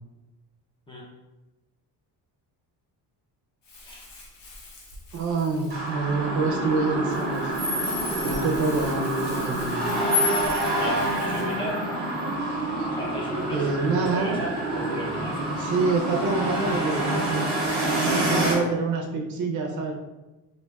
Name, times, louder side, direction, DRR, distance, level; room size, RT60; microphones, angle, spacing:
Crumpling crinkling, 3.6-11.6, left 1 dB, 55° left, 0.8 m, -44 dB
voice 1, 5.1-7.5 8.2-9.8 12.8-12.9 13.5-14.4 15.5-17.5 18.0-19.9, right 3 dB, 45° right, 1 dB, 0.6 m, -26 dB
sound 1, 5.7-18.5, right 1 dB, 25° right, 1.1 m, -27 dB
voice 2, 10.8-11.8 13.0-15.6, equal, 15° left, -3 dB, 0.5 m, -35 dB
4.2 x 2.6 x 2.2 m, 1.1 s
cardioid pair, 180°, 41 cm